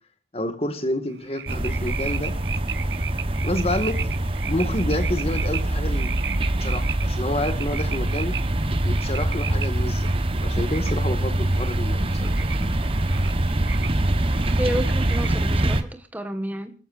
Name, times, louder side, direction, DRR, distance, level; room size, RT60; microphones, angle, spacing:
voice 1, 0.3-2.4 3.4-4.1 4.4-6.1 6.6-8.4 8.8-10.1 10.4-12.5, left 1 dB, 35° left, 9 dB, 1.9 m, -29 dB
sound 1, 1.1-15.6, right 8 dB, 85° right, 1.0 m, -37 dB
sound 2, 1.5-15.8, right 1 dB, 30° right, 1.1 m, -24 dB
voice 2, 14.6-16.7, equal, 10° right, 8 dB, 1.5 m, -30 dB
28.5 x 13.5 x 2.6 m, 0.37 s
head